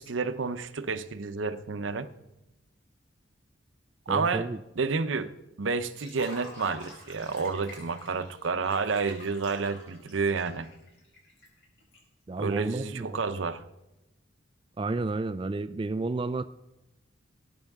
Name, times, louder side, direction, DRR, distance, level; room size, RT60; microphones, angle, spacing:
voice 1, 0.0-2.1 4.1-4.5 4.8-5.3 5.6-10.7 12.4-13.6, right 4 dB, 75° right, 0.7 m, -30 dB
voice 2, 4.1-4.6 12.3-13.2 14.8-16.4, right 3 dB, 25° right, 0.3 m, -31 dB
Liquid, 5.9-12.0, left 1 dB, 60° left, 5.9 m, -47 dB
20.0 x 9.9 x 3.6 m
head